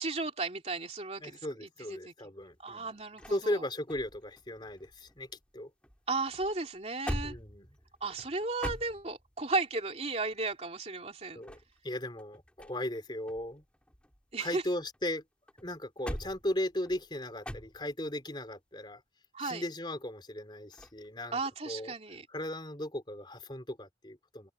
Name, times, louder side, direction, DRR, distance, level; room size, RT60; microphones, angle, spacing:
voice 1, 0.0-2.1 2.6-3.6 6.1-7.3 8.0-11.4 14.3-14.6 19.3-19.6 21.3-22.3, right 3 dB, 35° right, 3.1 m, -35 dB
voice 2, 1.2-2.9 3.3-5.3 5.5-5.7 7.2-7.7 11.3-11.6 11.8-13.6 14.4-15.2 15.6-19.0 19.4-21.4 21.7-21.9 22.3-24.5, left 1 dB, 25° left, 3.7 m, -37 dB
sound 1, 2.4-5.6 5.8-9.5 11.2-13.0 13.3-15.0 15.5-18.1 20.7-21.1, equal, 5° left, 5.9 m, -43 dB
open air
head